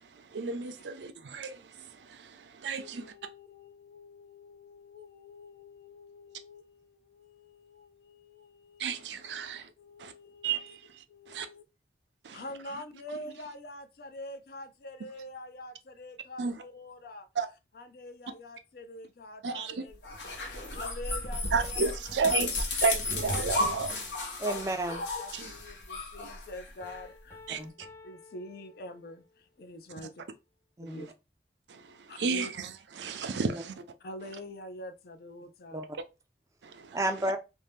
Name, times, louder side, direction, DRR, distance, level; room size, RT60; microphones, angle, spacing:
voice 1, 0.0-3.1 8.8-9.7 10.0-10.1 10.4-10.8 11.3-11.5 12.2-12.4 16.4-16.5 17.4-17.5 19.4-19.8 21.5-24.4 25.3-25.5 27.5-27.6 31.7-32.7 33.0-33.8 36.6-37.0, right 5 dB, 80° right, 0.5 m, -33 dB
voice 2, 2.8-10.8 11.1-11.6 12.3-17.3 17.7-21.8 25.2-27.6 28.0-30.2 30.8-31.1 32.1-32.5 34.0-35.8, left 1 dB, 55° left, 0.4 m, -46 dB
sound 1, 20.0-27.0, left 2 dB, 85° left, 0.9 m, -33 dB
voice 3, 24.4-25.0 27.6-27.7 30.8-31.0 33.3-33.6 35.7-36.0 36.9-37.4, right 1 dB, 20° right, 0.3 m, -32 dB
Piano, 26.8-29.4, left 3 dB, 15° left, 0.7 m, -52 dB
2.7 x 2.2 x 3.3 m
head